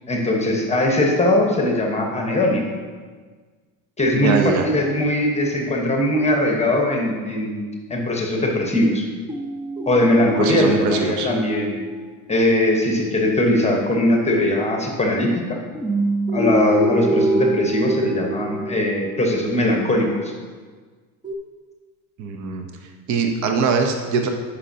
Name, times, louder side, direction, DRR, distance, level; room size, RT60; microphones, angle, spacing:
voice 1, 0.1-2.6 4.0-7.6 7.9-9.0 9.9-11.8 12.3-15.6 16.3-20.3, left 1 dB, 15° left, 1 dB, 1.1 m, -20 dB
sound 1, 4.0-6.7 9.3-13.1 15.7-19.5 21.2-21.3, right 1 dB, 10° right, 0.5 m, -27 dB
voice 2, 4.2-4.7 10.4-11.3 22.2-22.7 23.1-24.3, right 5 dB, 45° right, 4 dB, 0.8 m, -22 dB
9.7 x 5.6 x 2.8 m, 1.5 s
supercardioid pair, 105°, 42 cm